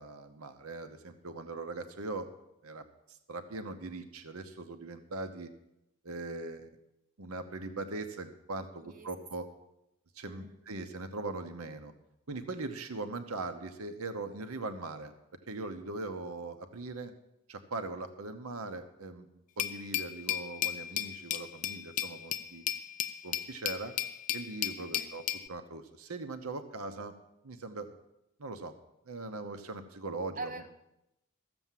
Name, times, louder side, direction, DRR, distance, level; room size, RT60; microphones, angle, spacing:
voice 1, 0.0-2.3 2.6-5.5 6.0-6.7 7.2-9.5 10.1-11.9 12.3-15.1 15.5-17.1 17.5-22.6 23.2-23.9 24.3-25.2 25.5-27.1 27.4-28.0 28.4-28.7 29.1-30.5, right 3 dB, 90° right, 8 dB, 0.9 m, -40 dB
voice 2, 8.6-9.1 10.2-10.6 24.8-25.1 30.4-30.7, right 3 dB, 40° right, 3 dB, 1.3 m, -44 dB
Glass, 19.6-25.5, left 11 dB, 35° left, 0.4 m, -35 dB
14.0 x 7.0 x 7.5 m, 0.87 s
head